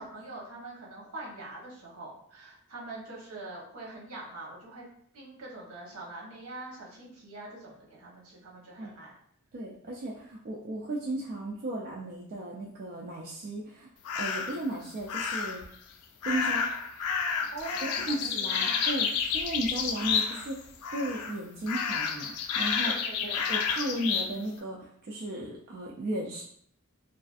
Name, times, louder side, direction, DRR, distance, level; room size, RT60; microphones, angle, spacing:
voice 1, 0.0-4.9 5.1-9.2 17.5-18.8 22.8-23.4, right 2 dB, 70° right, -4 dB, 0.9 m, -43 dB
voice 2, 9.5-15.7 16.3-16.7 18.1-19.1 19.3-22.9 23.2-26.4, right 1 dB, 45° right, -3 dB, 0.3 m, -35 dB
sound 1, 14.0-14.6 15.1-15.7 16.2-20.6 20.8-21.3 21.7-24.3, left 6 dB, 85° left, 0.3 m, -30 dB
2.4 x 2.4 x 2.4 m, 0.65 s
head